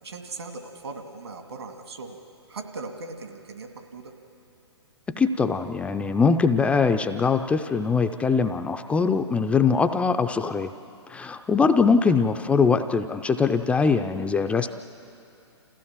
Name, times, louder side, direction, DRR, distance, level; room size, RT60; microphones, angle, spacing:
voice 1, 0.0-2.2 2.5-4.1, right 3 dB, 65° right, 4 dB, 2.3 m, -39 dB
voice 2, 5.1-10.7 11.1-14.7, left 5 dB, 10° left, 7 dB, 0.5 m, -22 dB
28.0 x 15.5 x 7.4 m, 2.7 s
figure-of-eight pair, 120°, 15 cm